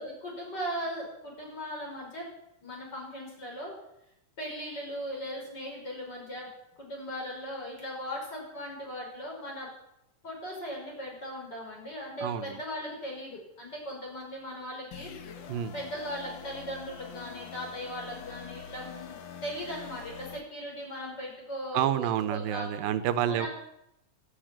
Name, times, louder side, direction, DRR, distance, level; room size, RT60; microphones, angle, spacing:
voice 1, 0.0-2.3 2.6-3.7 4.4-6.5 6.8-9.7 10.2-15.1 15.4-15.5 15.7-22.7 23.2-23.5, equal, 30° left, -1 dB, 5.9 m, -38 dB
voice 2, 12.2-12.6 15.5-15.7 21.7-23.5, right 10 dB, 85° right, 12 dB, 2.7 m, -28 dB
sound 1, 14.9-20.4, left 7 dB, 75° left, 1.0 m, -45 dB
13.0 x 11.5 x 8.9 m, 0.82 s
omnidirectional pair, 3.9 m